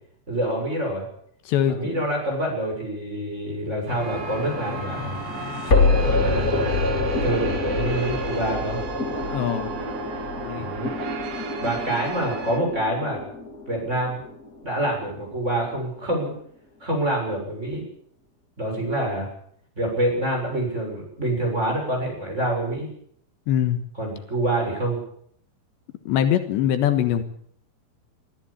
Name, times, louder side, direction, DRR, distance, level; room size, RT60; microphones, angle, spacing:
voice 1, 0.3-1.0 1.7-5.2 6.2-8.8 10.6-10.9 11.6-13.2 13.7-14.2 14.6-16.3 16.8-17.8 18.6-19.3 19.8-22.9 24.0-25.0, right 1 dB, 15° right, 1 dB, 7.2 m, -26 dB
voice 2, 1.5-2.1 9.3-9.7 10.4-10.7 23.5-23.8 26.1-27.2, left 10 dB, 80° left, 9 dB, 3.6 m, -23 dB
sound 1, 3.9-14.9, left 3 dB, 25° left, 2.0 m, -26 dB
sound 2, 3.9-12.6, right 5 dB, 60° right, 4.1 m, -35 dB
23.5 x 14.0 x 8.8 m, 0.66 s
omnidirectional pair, 5.1 m